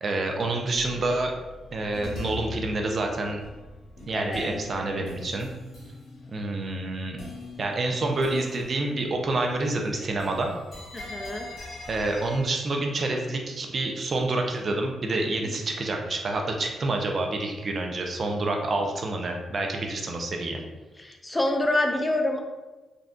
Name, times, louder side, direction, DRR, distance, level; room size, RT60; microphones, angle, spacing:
voice 1, 0.0-1.3 1.7-3.4 4.1-5.5 6.3-7.2 7.6-10.5 11.9-20.6, right 2 dB, 45° right, 2 dB, 0.4 m, -28 dB
sound 1, 0.7-9.8 10.0-12.4, left 3 dB, 65° left, 1.0 m, -42 dB
voice 2, 4.1-4.6 10.9-11.5 15.4-15.5 21.0-22.4, left 1 dB, 15° left, 2 dB, 0.4 m, -27 dB
3.4 x 2.5 x 2.4 m, 1.2 s
cardioid pair, 95°, 0 cm